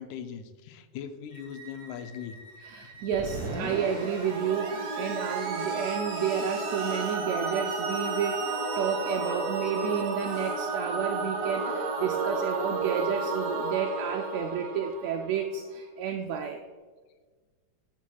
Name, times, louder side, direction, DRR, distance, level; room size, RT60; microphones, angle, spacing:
voice 1, 0.0-2.4 2.9-3.0, left 8 dB, 80° left, 9 dB, 1.9 m, -40 dB
Bowed string instrument, 1.3-10.1, right 2 dB, 30° right, 0.9 m, -53 dB
voice 2, 2.6-16.6, right 7 dB, 85° right, 4 dB, 1.5 m, -31 dB
Screech, 3.1-13.6, right 3 dB, 45° right, 2.0 m, -41 dB
Singing / Musical instrument, 4.2-15.5, right 3 dB, 60° right, 2.2 m, -32 dB
12.0 x 5.8 x 2.3 m, 1.4 s
omnidirectional pair, 3.6 m